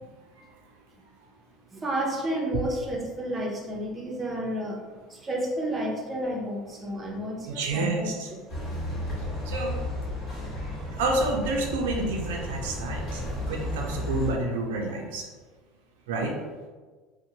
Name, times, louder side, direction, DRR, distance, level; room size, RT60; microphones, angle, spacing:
voice 1, 1.7-8.4, right 1 dB, 25° right, -1 dB, 0.7 m, -31 dB
voice 2, 7.5-8.3 9.5-9.7 10.4-15.3 16.1-16.3, right 2 dB, 85° right, 0 dB, 0.4 m, -29 dB
sound 1, 8.5-14.3, left 1 dB, 45° left, 1.3 m, -33 dB
2.6 x 2.1 x 2.8 m, 1.4 s
supercardioid pair, 95°, 0 cm